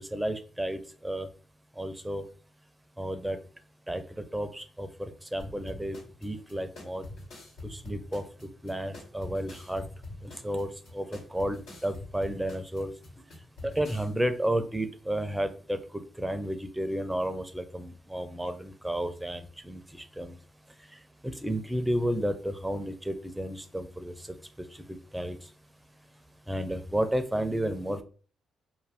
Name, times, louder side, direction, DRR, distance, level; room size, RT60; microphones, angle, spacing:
voice 1, 0.1-1.3 1.8-2.2 3.0-3.4 3.9-4.0 4.3-6.0 6.2-7.0 7.9-8.2 8.6-9.8 10.4-10.7 10.9-11.6 11.8-12.9 13.6-19.8 20.2-20.3 21.4-24.1 25.1-25.4 26.5-28.0, right 1 dB, 10° right, 9 dB, 0.5 m, -31 dB
sound 1, 5.4-14.1, left 2 dB, 85° left, 1.1 m, -44 dB
2.5 x 2.2 x 3.3 m, 0.39 s
supercardioid pair, 50°, 0 cm